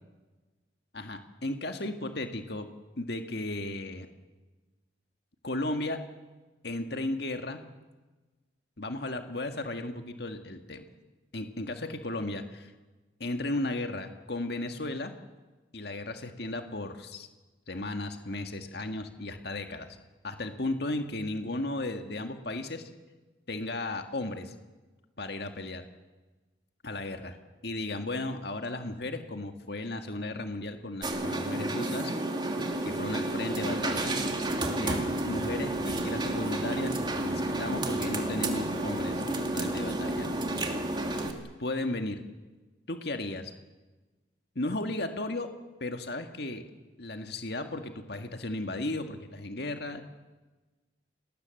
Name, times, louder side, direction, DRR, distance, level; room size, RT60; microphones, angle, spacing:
voice 1, 0.9-2.7 3.0-4.1 5.4-6.1 6.6-7.6 8.8-10.8 11.3-12.7 13.2-15.1 15.7-17.3 17.7-20.0 20.2-22.9 23.5-24.5 25.2-25.9 26.8-27.4 27.6-32.1 32.8-34.1 34.8-40.3 41.6-42.2 42.9-43.5 44.6-45.5 45.8-46.7 47.0-50.0, left 2 dB, 60° left, 6 dB, 1.9 m, -35 dB
sound 1, 31.0-41.3, right 1 dB, 25° right, 2.6 m, -31 dB
28.5 x 20.0 x 7.9 m, 1.2 s
head